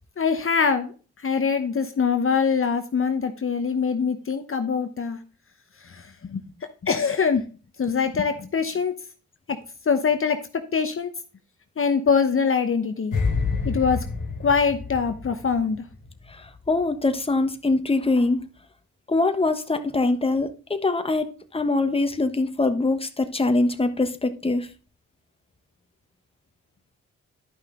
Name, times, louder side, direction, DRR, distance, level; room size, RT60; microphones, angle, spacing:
voice 1, 0.2-0.9 1.2-5.2 5.8-7.4 7.8-8.9 9.5-9.6 9.9-11.1 11.8-13.1 13.6-14.0 14.4-15.8, left 6 dB, 45° left, 1.0 m, -23 dB
Soft Cinematic Impact, 13.1-16.3 16.6-16.8, left 4 dB, 75° left, 2.0 m, -28 dB
voice 2, 16.3-18.5 19.1-24.7, left 2 dB, 20° left, 1.2 m, -23 dB
11.5 x 5.6 x 3.7 m
cardioid pair, 60°, 31 cm